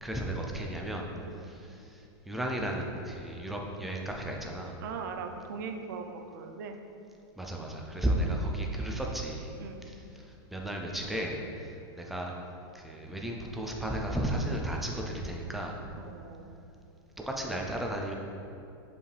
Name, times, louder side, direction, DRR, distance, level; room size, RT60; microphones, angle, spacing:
voice 1, 0.0-1.1 1.5-4.8 7.4-9.5 9.9-10.0 10.5-12.3 12.7-15.8 17.3-18.1, right 1 dB, ahead, 0 dB, 0.3 m, -34 dB
voice 2, 4.8-6.8 8.2-8.4 9.6-9.8 16.0-16.5, right 5 dB, 50° right, 5 dB, 0.6 m, -40 dB
7.3 x 5.2 x 3.3 m, 2.7 s
supercardioid pair, 175°, 13 cm